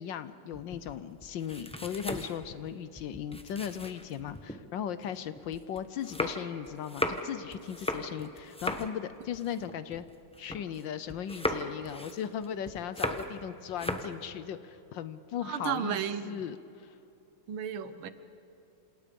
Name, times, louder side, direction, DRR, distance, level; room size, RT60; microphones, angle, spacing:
voice 1, 0.0-10.0 10.4-16.0 16.2-16.9, left 9 dB, 70° left, 13 dB, 1.4 m, -37 dB
sound 1, 0.5-4.6 5.0-10.8 11.1-13.4 13.7-14.2, left 1 dB, 5° left, 0.7 m, -37 dB
voice 2, 15.4-16.4 17.5-18.1, right 8 dB, 75° right, 12 dB, 1.8 m, -33 dB
28.0 x 27.0 x 5.3 m, 2.8 s
omnidirectional pair, 2.3 m